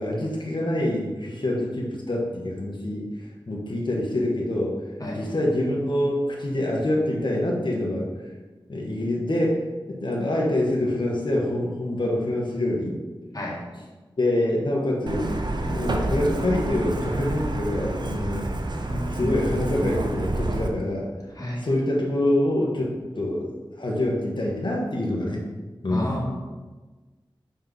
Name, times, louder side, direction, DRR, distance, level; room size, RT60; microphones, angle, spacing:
voice 1, 0.0-3.0 3.5-4.7 5.1-8.1 8.7-9.6 9.9-12.9 14.2-15.3 15.6-18.5 19.1-21.1 21.6-23.5 23.8-25.4 25.8-26.2, left 1 dB, 60° left, -2 dB, 1.4 m, -25 dB
Truck, 15.1-20.7, right 2 dB, 55° right, 0.7 m, -28 dB
voice 2, 18.9-19.4 21.4-21.6 25.9-26.3, left 1 dB, 45° left, -5 dB, 1.8 m, -30 dB
5.9 x 4.4 x 5.4 m, 1.3 s
wide cardioid pair, 65°, 9 cm